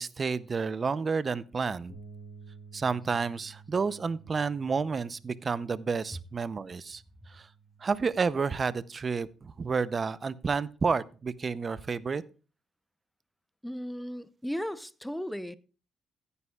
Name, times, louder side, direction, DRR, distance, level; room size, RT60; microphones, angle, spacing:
voice 1, 0.0-2.0 2.7-7.0 7.3-7.5 7.8-12.2, right 5 dB, 35° right, 0.6 m, -30 dB
Bass guitar, 1.9-8.1, right 5 dB, 65° left, 2.8 m, -53 dB
voice 2, 13.6-15.6, equal, ahead, 0.7 m, -36 dB
15.5 x 9.6 x 2.3 m
cardioid pair, 90°, 0 cm